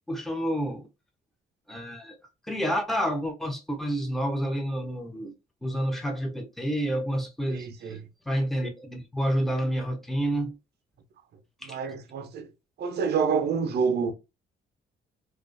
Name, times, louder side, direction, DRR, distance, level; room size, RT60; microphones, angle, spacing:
voice 1, 0.1-0.9 1.7-2.2 2.4-5.3 5.6-8.0 8.3-10.5 11.6-11.8, equal, ahead, 0.6 m, -29 dB
voice 2, 7.5-8.0 11.6-12.5 12.8-14.1, right 6 dB, 55° right, 0.5 m, -27 dB
2.3 x 2.3 x 2.4 m
cardioid pair, 90°, 20 cm